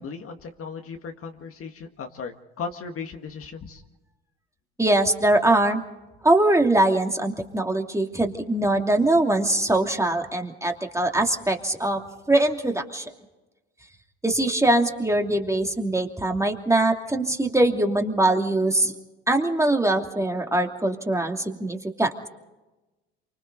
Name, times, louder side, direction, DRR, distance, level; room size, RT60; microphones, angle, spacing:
voice 1, 0.0-3.8, left 5 dB, 45° left, 5 dB, 2.0 m, -36 dB
voice 2, 4.8-5.8 6.2-12.0 12.3-13.0 14.2-18.9 19.3-22.3, right 1 dB, 10° right, 3 dB, 2.7 m, -22 dB
28.0 x 25.0 x 4.0 m, 1.1 s
hypercardioid pair, 70°, 31 cm